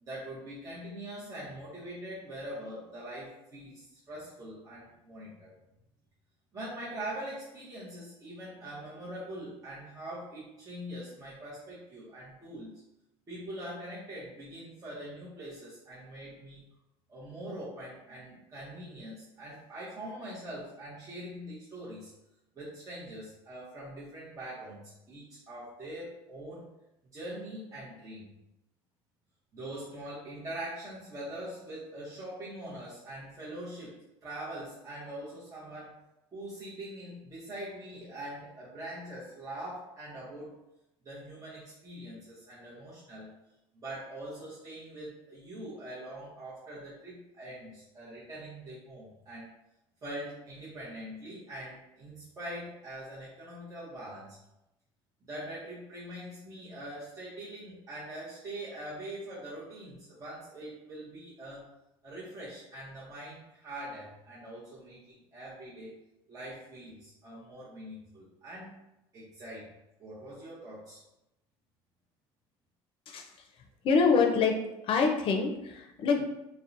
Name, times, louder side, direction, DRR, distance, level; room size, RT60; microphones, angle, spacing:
voice 1, 0.0-5.5 6.5-12.8 13.3-16.6 17.1-22.1 22.5-26.7 27.1-28.3 29.5-36.0 36.3-40.6 41.0-43.3 43.7-49.5 50.0-54.4 55.2-61.7 62.0-65.9 66.3-68.8 69.1-69.7 70.0-71.0, right 1 dB, 30° right, -9 dB, 0.7 m, -43 dB
voice 2, 73.8-74.5 74.8-76.3, left 5 dB, 50° left, 2 dB, 0.5 m, -25 dB
2.7 x 2.1 x 2.5 m, 0.91 s
cardioid pair, 110°, 11 cm